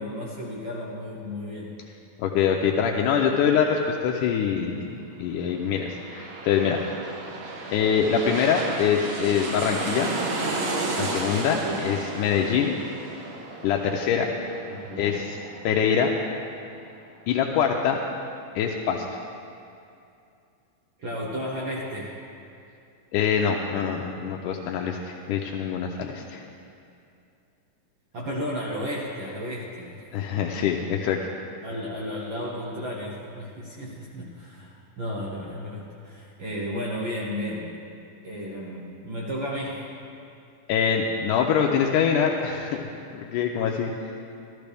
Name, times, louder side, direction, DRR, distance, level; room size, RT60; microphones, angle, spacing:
voice 1, 0.0-1.7 11.4-11.8 14.7-15.3 21.0-22.1 28.1-30.0 30.3-30.5 31.6-37.7 38.2-39.9, equal, 65° right, -4 dB, 1.2 m, -33 dB
voice 2, 2.2-6.8 7.7-10.1 11.0-12.8 13.6-14.3 15.0-15.4 15.7-16.1 17.3-18.0 18.6-19.2 23.1-26.4 30.1-31.2 40.7-42.8 43.1-44.1, left 7 dB, 85° left, 0 dB, 2.1 m, -24 dB
sound 1, 5.6-16.9 17.3-17.4, right 2 dB, 85° right, 2.8 m, -33 dB
14.0 x 13.0 x 3.4 m, 2.6 s
omnidirectional pair, 3.7 m